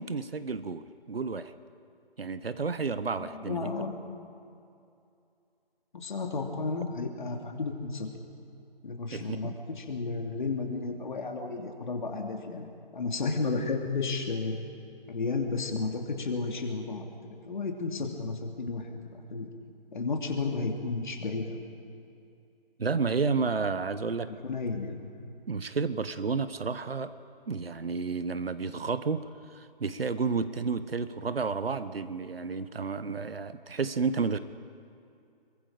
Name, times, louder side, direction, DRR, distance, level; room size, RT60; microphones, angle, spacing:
voice 1, 0.0-1.5 2.2-3.7 9.1-9.5 22.8-24.3 25.5-27.1 27.5-34.4, right 4 dB, 80° right, 13 dB, 1.1 m, -31 dB
voice 2, 3.2-4.0 5.9-8.1 8.8-14.6 15.1-17.0 17.5-19.5 19.9-21.6 24.3-25.0, left 4 dB, 55° left, 2 dB, 2.9 m, -33 dB
26.0 x 23.0 x 5.1 m, 2.5 s
figure-of-eight pair, 160°, 29 cm